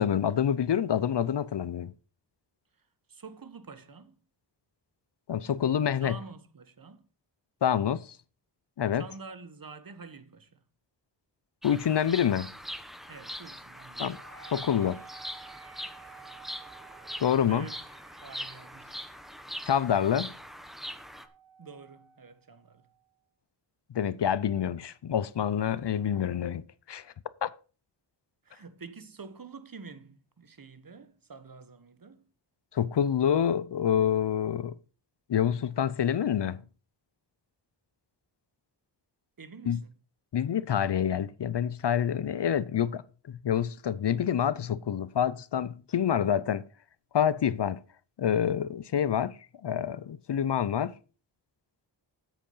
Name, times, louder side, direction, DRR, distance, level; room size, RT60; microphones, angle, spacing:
voice 1, 0.0-1.9 5.3-6.2 7.6-8.2 8.8-9.0 11.6-12.5 14.0-14.2 14.5-15.0 17.2-17.7 19.7-20.3 23.9-26.6 26.9-27.1 27.4-27.5 32.7-34.7 35.3-36.6 39.7-39.8 40.3-43.0 43.4-46.6 47.1-47.8 48.2-51.0, left 9 dB, 65° left, 0.6 m, -27 dB
voice 2, 3.1-4.1 6.0-7.0 8.9-10.6 13.1-14.1 17.5-17.8 18.1-19.0 21.6-22.8 28.4-32.2 39.4-39.9, right 5 dB, 50° right, 1.3 m, -47 dB
Bird vocalization bird call bird song, 11.6-21.3, equal, ahead, 1.2 m, -42 dB
Wind instrument woodwind instrument, 14.1-23.0, right 7 dB, 65° right, 2.5 m, -54 dB
8.4 x 8.1 x 5.5 m
wide cardioid pair, 60°, 45 cm